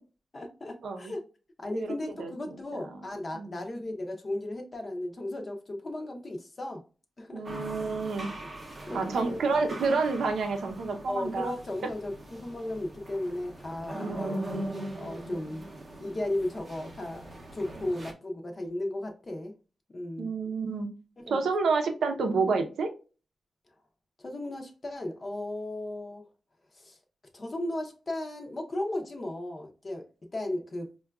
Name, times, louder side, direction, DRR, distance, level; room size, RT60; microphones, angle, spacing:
voice 1, 0.3-1.2 1.6-6.8 7.2-7.5 8.9-9.4 11.1-14.4 14.9-15.7 16.0-19.5 19.9-20.3 21.2-21.4 24.2-26.3 26.7-27.0 27.3-30.1 30.3-30.9, left 1 dB, 30° left, 0.5 m, -35 dB
voice 2, 1.7-2.8 3.3-3.5 7.3-8.3 8.9-11.5 14.0-14.5 20.2-20.9 21.3-22.9, right 4 dB, 85° right, 0.6 m, -29 dB
sound 1, 7.5-18.1, right 1 dB, 25° right, 0.6 m, -41 dB
4.6 x 2.2 x 2.3 m
wide cardioid pair, 170°, 0 cm